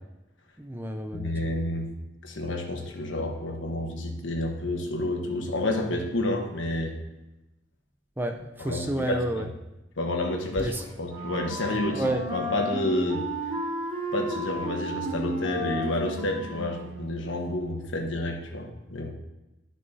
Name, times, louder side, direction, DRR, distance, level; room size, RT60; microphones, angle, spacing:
voice 1, 0.6-1.4 8.2-9.5 10.6-10.8 12.0-12.2, right 1 dB, 10° right, 5 dB, 0.4 m, -30 dB
voice 2, 1.1-1.9 2.2-7.0 8.6-9.5 10.0-13.2 14.1-19.1, left 1 dB, 80° left, 3 dB, 1.2 m, -30 dB
Wind instrument woodwind instrument, 11.0-17.2, equal, 25° right, 2.3 m, -33 dB
12.5 x 6.2 x 2.7 m, 0.97 s
head